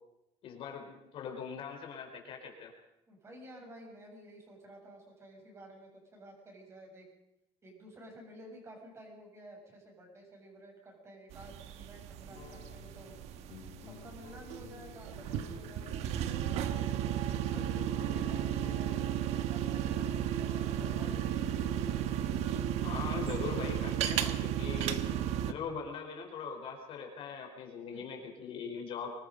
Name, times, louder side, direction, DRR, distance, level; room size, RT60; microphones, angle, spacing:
voice 1, 0.4-2.7 22.8-25.0 25.4-29.1, left 6 dB, 50° left, 2 dB, 4.5 m, -41 dB
voice 2, 3.1-7.1 7.6-13.2 13.8-16.1 16.5-16.9 17.3-21.5 27.9-28.0, right 1 dB, 25° right, 1 dB, 7.5 m, -52 dB
sound 1, 11.3-25.5, right 10 dB, 70° right, 1.4 m, -34 dB
sound 2, 12.3-23.8, left 11 dB, 70° left, 1.8 m, -52 dB
25.0 x 20.5 x 5.4 m, 0.90 s
cardioid pair, 155°, 12 cm